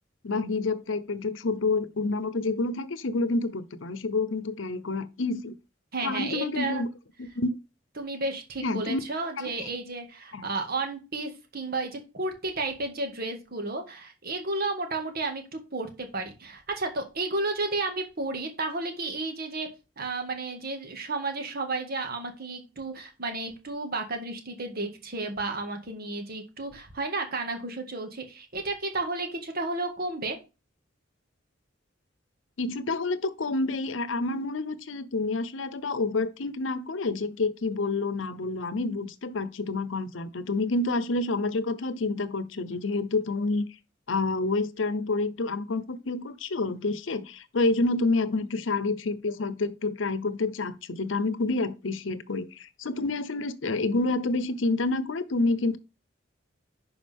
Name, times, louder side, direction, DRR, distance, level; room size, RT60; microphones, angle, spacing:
voice 1, 0.2-5.6 6.0-6.9 7.2-7.5 8.6-9.0 9.4-9.5 10.3-10.4 32.6-43.6 44.1-55.8, left 3 dB, 85° left, 0.8 m, -28 dB
voice 2, 5.9-6.8 8.0-19.7 20.0-30.4, right 3 dB, 55° right, 1.9 m, -32 dB
10.5 x 5.0 x 3.6 m
head